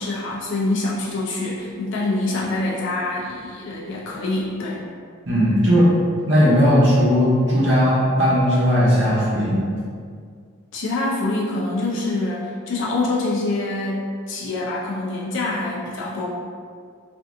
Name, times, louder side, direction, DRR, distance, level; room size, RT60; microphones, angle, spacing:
voice 1, 0.0-4.8 10.7-16.3, left 2 dB, 55° left, -4 dB, 0.4 m, -25 dB
voice 2, 5.3-5.9 6.3-9.6, equal, 55° right, -8 dB, 0.8 m, -17 dB
3.3 x 2.5 x 2.5 m, 2.1 s
head